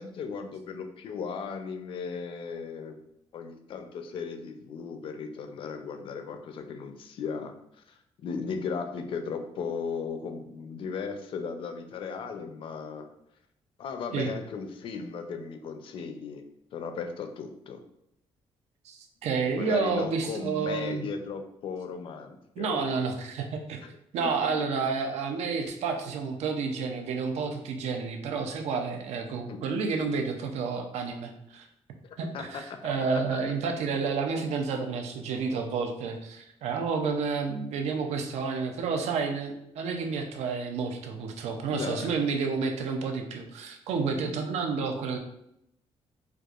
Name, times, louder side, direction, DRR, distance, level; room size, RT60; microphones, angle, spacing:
voice 1, 0.0-3.0 3.3-7.5 8.2-13.1 13.8-16.4 16.7-17.8 19.5-22.9 23.8-23.9 29.5-29.6 32.0-32.8 33.1-33.2 41.7-42.1 44.2-44.3, left 5 dB, 50° left, 6 dB, 0.4 m, -36 dB
voice 2, 18.8-21.1 22.6-23.8 24.1-31.7 32.2-45.2, right 5 dB, 85° right, 4 dB, 0.5 m, -30 dB
4.5 x 2.5 x 2.4 m, 0.78 s
cardioid pair, 175°, 11 cm